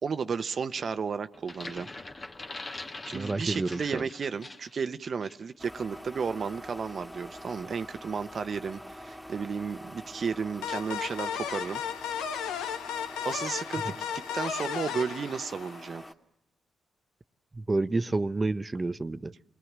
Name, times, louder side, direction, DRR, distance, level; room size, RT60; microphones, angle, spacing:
voice 1, 0.0-1.9 3.0-11.8 13.2-16.0, right 5 dB, 55° right, 0.9 m, -33 dB
sound 1, 1.3-4.8 5.2-5.4, left 2 dB, 35° left, 1.8 m, -43 dB
voice 2, 3.1-4.0 17.5-19.3, right 2 dB, 30° right, 0.9 m, -29 dB
sound 2, 5.6-16.1, equal, 5° left, 2.4 m, -46 dB
sound 3, 10.6-16.0, left 8 dB, 90° left, 1.0 m, -34 dB
28.5 x 20.0 x 7.4 m
supercardioid pair, 50°, 0 cm